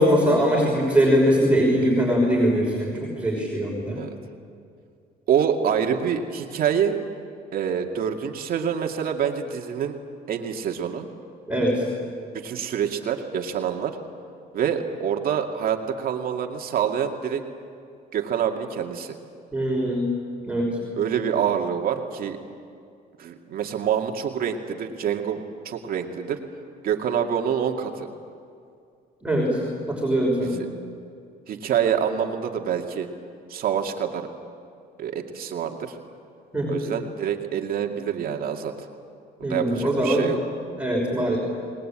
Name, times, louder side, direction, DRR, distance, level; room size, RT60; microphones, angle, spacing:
voice 1, 0.0-4.0 11.5-11.8 19.5-20.1 20.5-20.7 29.2-29.6 29.9-30.6 36.5-36.8 39.4-40.3 40.6-41.4, equal, 5° right, -4 dB, 5.8 m, -22 dB
voice 2, 5.3-6.9 7.5-10.0 10.3-11.1 12.3-14.0 14.5-17.4 18.1-19.1 21.0-22.4 23.2-26.4 26.8-28.1 30.4-30.7 31.5-33.1 33.5-34.3 35.0-35.9 36.7-38.7 39.4-40.4, right 8 dB, 60° right, 3 dB, 2.3 m, -26 dB
27.5 x 20.5 x 8.9 m, 2.3 s
cardioid pair, 110°, 17 cm